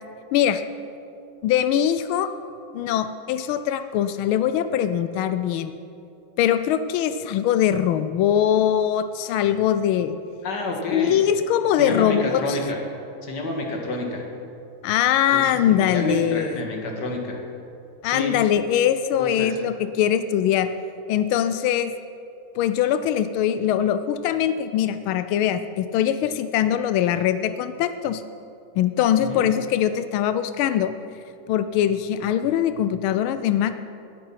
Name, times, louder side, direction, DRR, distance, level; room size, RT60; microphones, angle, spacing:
voice 1, 0.3-0.6 1.4-2.3 2.7-5.7 6.4-10.2 10.9-12.6 14.8-16.6 18.0-20.7 21.1-21.9 22.6-28.2 28.8-30.9 31.5-33.7, left 10 dB, 90° left, 11 dB, 1.4 m, -22 dB
voice 2, 10.4-11.2 11.8-12.8 13.2-14.2 15.3-17.4 18.0-18.3 19.2-19.6 29.2-29.4, left 2 dB, 55° left, 1 dB, 2.3 m, -29 dB
19.5 x 7.8 x 5.7 m, 2.6 s
omnidirectional pair, 2.2 m